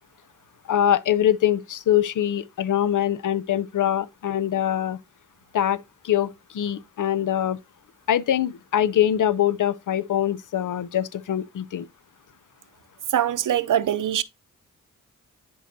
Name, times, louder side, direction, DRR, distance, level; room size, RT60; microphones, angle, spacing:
voice 1, 0.7-5.0 5.5-5.8 6.0-7.6 8.1-11.9, left 10 dB, 70° left, 0.6 m, -23 dB
voice 2, 13.1-14.2, right 10 dB, 75° right, 0.6 m, -22 dB
11.0 x 3.9 x 2.6 m
cardioid pair, 45°, 32 cm